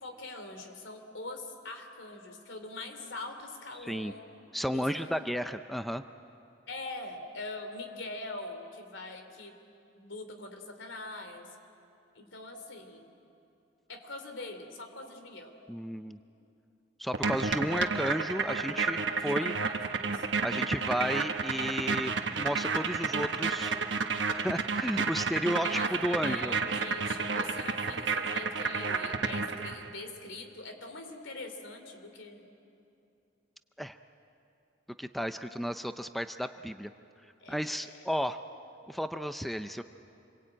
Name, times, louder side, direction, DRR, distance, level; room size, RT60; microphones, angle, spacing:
voice 1, 0.0-4.2 4.7-5.1 6.7-9.5 10.0-11.5 12.1-13.1 13.9-15.5 19.1-20.3 23.6-23.8 25.6-32.4 37.4-38.0, left 2 dB, 85° left, 6 dB, 3.1 m, -43 dB
voice 2, 3.8-4.1 4.5-6.0 15.7-16.2 17.0-19.6 20.4-23.7 24.3-26.5 33.8-34.0 35.0-36.9 37.5-38.4 38.9-39.8, equal, ahead, 9 dB, 0.5 m, -33 dB
sound 1, 17.1-29.9, right 4 dB, 70° right, 1.2 m, -31 dB
27.5 x 22.5 x 8.9 m, 2.7 s
head